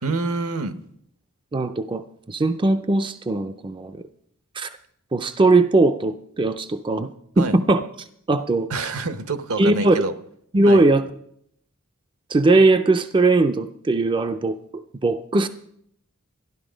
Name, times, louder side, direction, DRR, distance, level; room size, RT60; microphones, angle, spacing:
voice 1, 0.0-0.8 7.4-7.6 8.7-10.1 10.7-10.8, right 3 dB, 70° right, 11 dB, 0.9 m, -27 dB
voice 2, 1.5-4.0 4.6-4.8 5.1-7.1 7.4-7.8 8.3-8.7 9.6-10.0 10.5-11.0 12.3-15.5, right 2 dB, 20° right, 9 dB, 0.4 m, -19 dB
12.5 x 11.5 x 5.0 m, 0.70 s
head